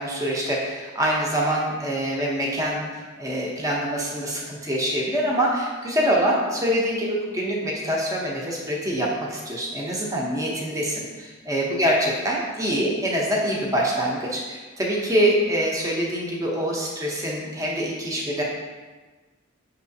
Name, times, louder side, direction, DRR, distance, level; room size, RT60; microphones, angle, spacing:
voice 1, 0.0-2.8 3.2-18.4, equal, 15° right, -3 dB, 0.7 m, -25 dB
5.6 x 3.0 x 2.7 m, 1.3 s
head